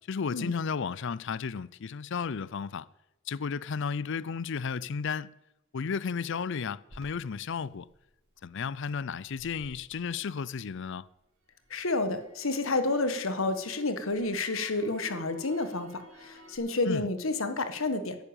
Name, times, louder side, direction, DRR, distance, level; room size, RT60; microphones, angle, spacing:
voice 1, 0.1-2.9 3.3-5.3 5.7-7.9 8.4-11.0 16.8-17.1, left 6 dB, 60° left, 0.5 m, -33 dB
Crackle, 6.9-11.0 11.4-16.6, equal, 75° right, 4.1 m, -52 dB
voice 2, 11.7-18.2, left 2 dB, 75° left, 1.4 m, -30 dB
11.0 x 10.0 x 9.0 m
head